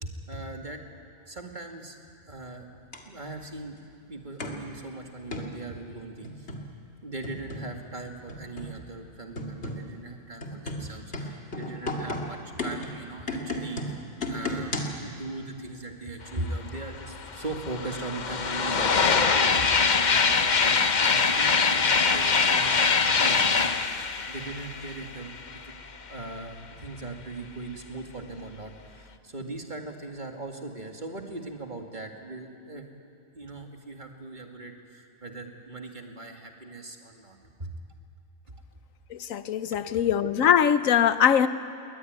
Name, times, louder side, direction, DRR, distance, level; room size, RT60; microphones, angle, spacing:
voice 1, 0.0-0.8 1.3-2.0 2.3-2.7 3.1-3.8 4.1-6.5 7.0-23.7 24.3-25.7 26.1-32.9 33.3-37.7 38.5-38.6 39.7-39.8, right 2 dB, 35° right, 3 dB, 2.3 m, -39 dB
sound 1, 2.9-3.0 4.4-4.6 5.3-5.5 6.2-6.7 7.2-7.7 8.3-8.8 9.4-9.9 10.4-15.1, left 1 dB, 55° left, 2.5 m, -34 dB
sound 2, 16.8-16.9 17.1-25.7, left 5 dB, 40° left, 0.9 m, -23 dB
voice 2, 39.1-41.5, left 9 dB, 85° left, 13 dB, 1.2 m, -22 dB
22.0 x 20.0 x 9.5 m, 2.7 s
omnidirectional pair, 1.4 m